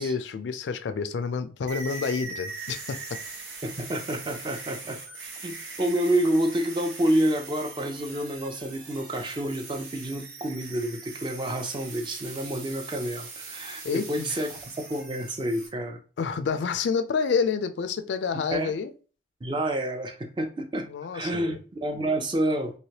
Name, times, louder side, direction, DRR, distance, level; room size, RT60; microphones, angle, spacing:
voice 1, 0.0-3.0 13.8-14.4 16.2-18.9 20.8-21.6, left 5 dB, 85° left, 0.4 m, -28 dB
sound 1, 1.7-15.7, right 4 dB, 85° right, 0.9 m, -41 dB
voice 2, 3.6-5.0 5.4-14.6 14.9-16.0 18.5-18.7 19.4-20.9 21.1-22.7, right 1 dB, 25° right, 0.4 m, -28 dB
3.2 x 2.8 x 2.8 m
head